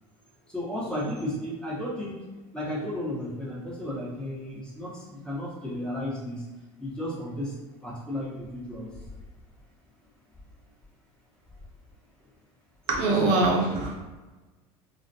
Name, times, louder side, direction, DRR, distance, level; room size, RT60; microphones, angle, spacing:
voice 1, 0.5-2.2 2.5-6.4 6.8-7.6 7.8-9.1, left 1 dB, 5° left, -7 dB, 0.9 m, -33 dB
voice 2, 12.9-13.9, right 2 dB, 65° right, -1 dB, 0.7 m, -23 dB
2.4 x 2.1 x 2.7 m, 1.2 s
supercardioid pair, 90°, 15 cm